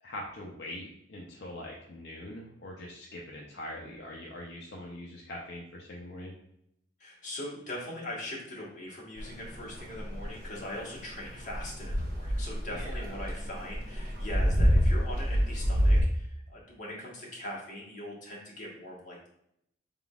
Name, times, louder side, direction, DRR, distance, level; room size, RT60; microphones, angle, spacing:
voice 1, 0.0-6.3 12.7-12.9, left 1 dB, 70° left, -2 dB, 0.6 m, -42 dB
voice 2, 7.0-19.3, left 1 dB, 45° left, -4 dB, 1.4 m, -41 dB
sound 1, 9.2-16.0, equal, 55° right, 1.1 m, -27 dB
4.8 x 3.7 x 2.3 m, 0.75 s
head